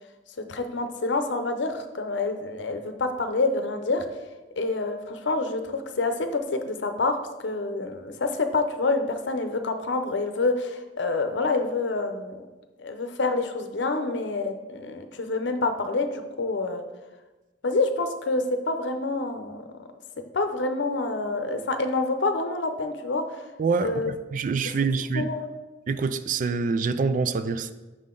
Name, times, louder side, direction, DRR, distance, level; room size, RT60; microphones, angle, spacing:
voice 1, 0.5-4.0 4.6-12.5 12.8-16.8 17.6-19.9 20.3-23.5 23.8-24.1 25.1-25.5, left 3 dB, 75° left, 7 dB, 0.7 m, -27 dB
voice 2, 23.6-25.3 25.9-27.7, right 4 dB, 45° right, 12 dB, 0.3 m, -26 dB
6.3 x 5.7 x 3.7 m, 1.2 s
head